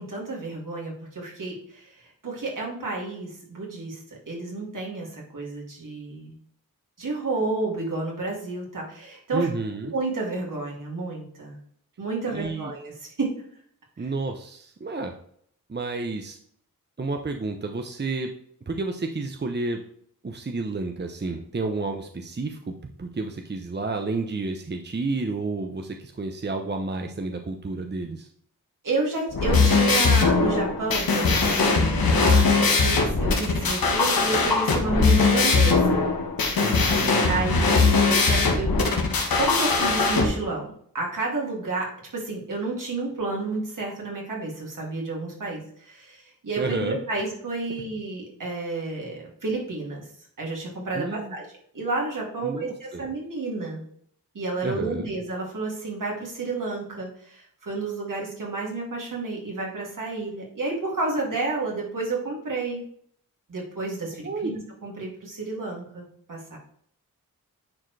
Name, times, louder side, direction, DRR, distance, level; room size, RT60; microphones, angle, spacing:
voice 1, 0.0-6.3 7.0-9.5 9.9-11.6 12.0-13.3 28.8-36.0 37.2-38.8 39.3-40.7 40.9-50.1 50.4-51.4 51.7-53.8 54.3-62.8 63.5-66.6, right 3 dB, 65° right, -2 dB, 2.7 m, -31 dB
voice 2, 9.3-9.9 12.3-12.7 14.0-15.1 15.7-16.4 17.0-18.3 18.7-19.8 20.2-28.3 36.6-37.7 46.6-47.0 50.9-51.4 52.4-53.0 54.6-55.1 64.2-64.5, right 3 dB, 30° right, 5 dB, 0.8 m, -31 dB
sound 1, 29.3-40.2, left 4 dB, 90° left, 1.4 m, -20 dB
9.6 x 4.5 x 3.3 m, 0.64 s
cardioid pair, 55°, 34 cm